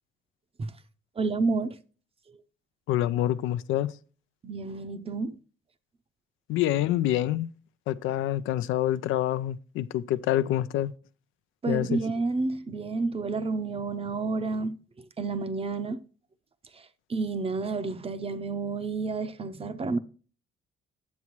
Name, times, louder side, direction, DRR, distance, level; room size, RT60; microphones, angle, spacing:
voice 1, 1.2-1.8 4.4-5.4 11.6-14.8 15.2-16.0 16.7-16.8 17.1-20.0, right 3 dB, 30° right, 0.6 m, -30 dB
voice 2, 2.9-4.0 6.5-7.5 7.9-10.9 11.7-12.0, left 13 dB, 85° left, 0.4 m, -26 dB
9.4 x 7.2 x 3.0 m
cardioid pair, 90°, 20 cm